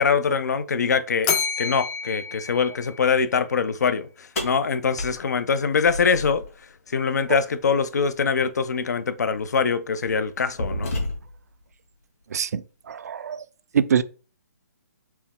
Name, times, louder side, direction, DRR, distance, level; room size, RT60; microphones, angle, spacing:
voice 1, 0.0-6.4 6.9-11.0, left 5 dB, 75° left, 0.5 m, -23 dB
Bell, 1.2-3.5, left 6 dB, 20° left, 0.4 m, -29 dB
sound 1, 4.4-6.5 8.4-8.5 9.3-9.5 10.0-11.5, left 1 dB, 55° left, 1.7 m, -31 dB
voice 2, 12.3-13.4 13.7-14.0, right 7 dB, 65° right, 0.4 m, -24 dB
4.4 x 2.1 x 3.5 m
hypercardioid pair, 150°, 9 cm